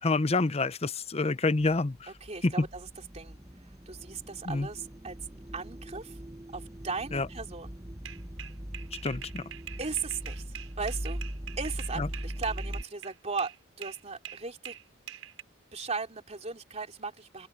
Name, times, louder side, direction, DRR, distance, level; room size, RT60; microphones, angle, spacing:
voice 1, 0.0-2.1 2.4-2.7 4.5-4.7 7.1-7.3 9.0-9.4 12.0-12.1, left 3 dB, 30° left, 0.7 m, -27 dB
sound 1, 2.0-12.8, equal, 15° right, 1.1 m, -40 dB
voice 2, 2.1-2.9 3.1-3.4 3.8-5.2 5.5-6.2 6.5-7.8 9.8-10.4 10.8-11.2 11.6-14.7 15.7-17.5, right 4 dB, 35° right, 3.3 m, -37 dB
sound 2, 8.0-13.6 13.8-15.4, right 10 dB, 90° right, 6.3 m, -44 dB
open air
head